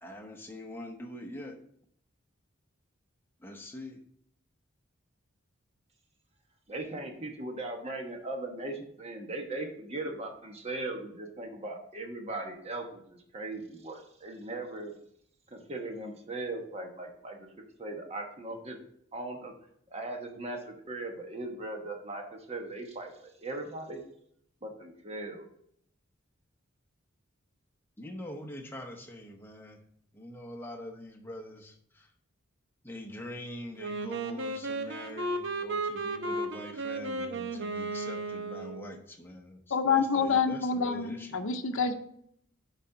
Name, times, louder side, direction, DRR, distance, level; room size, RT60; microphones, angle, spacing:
voice 1, 0.0-1.6 3.4-4.0 28.0-29.8 30.1-32.1 32.8-41.4, left 1 dB, 10° left, 1 dB, 0.9 m, -44 dB
voice 2, 6.7-14.9 15.5-17.5 17.8-18.8 19.1-19.5 19.9-24.0 24.6-25.5, right 2 dB, 30° right, 3 dB, 1.1 m, -39 dB
Wind instrument woodwind instrument, 33.8-39.0, right 2 dB, 60° right, 0.8 m, -34 dB
voice 3, 39.7-41.9, left 5 dB, 70° left, 5 dB, 0.7 m, -27 dB
10.5 x 4.1 x 3.8 m, 0.69 s
head